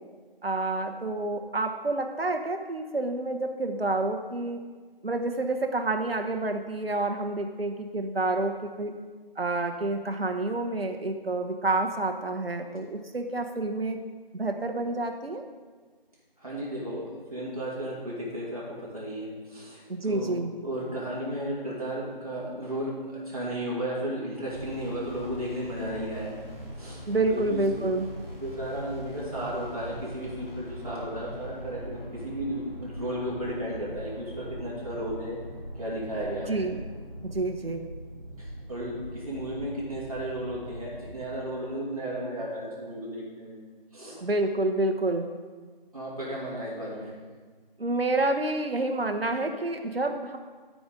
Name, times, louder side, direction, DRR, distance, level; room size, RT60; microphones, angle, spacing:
voice 1, 0.4-4.6 5.0-8.9 9.4-14.0 14.3-15.4 19.9-20.5 27.1-28.1 36.5-36.8 37.2-37.9 44.2-45.3 47.8-50.4, right 2 dB, 85° right, 5 dB, 1.0 m, -28 dB
voice 2, 16.4-20.4 20.6-26.4 26.8-27.9 28.4-35.4 35.8-36.7 38.4-43.6 43.9-44.2 45.9-47.1, right 1 dB, 40° right, -6 dB, 2.5 m, -34 dB
sound 1, 24.4-41.2, equal, ahead, 2.7 m, -41 dB
13.0 x 5.1 x 3.7 m, 1.5 s
figure-of-eight pair, 175°, 29 cm